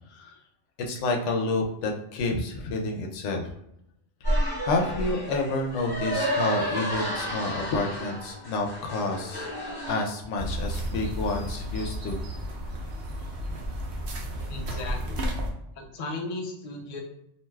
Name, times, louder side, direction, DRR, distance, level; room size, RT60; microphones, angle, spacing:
voice 1, 0.9-3.4 4.6-9.5 9.9-12.2, left 2 dB, 80° left, 2 dB, 0.9 m, -29 dB
sound 1, 4.2-10.0, equal, 20° left, 0.9 m, -30 dB
sound 2, 10.4-15.5, equal, 60° right, 0.8 m, -32 dB
voice 2, 14.5-15.3 15.7-17.0, left 2 dB, 50° left, 1 dB, 0.5 m, -36 dB
2.6 x 2.2 x 3.1 m, 0.79 s
omnidirectional pair, 1.2 m